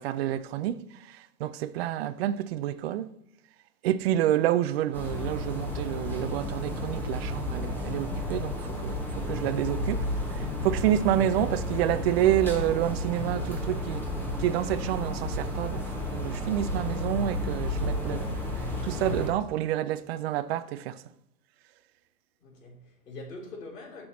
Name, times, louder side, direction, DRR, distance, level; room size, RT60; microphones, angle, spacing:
voice 1, 0.0-3.1 3.8-14.0 14.4-21.0, right 12 dB, 40° right, 0.6 m, -29 dB
sound 1, 4.9-19.3, left 1 dB, 5° left, 1.6 m, -32 dB
voice 2, 22.4-24.1, left 2 dB, 75° left, 4.1 m, -44 dB
13.0 x 6.2 x 3.1 m
hypercardioid pair, 130°, 48 cm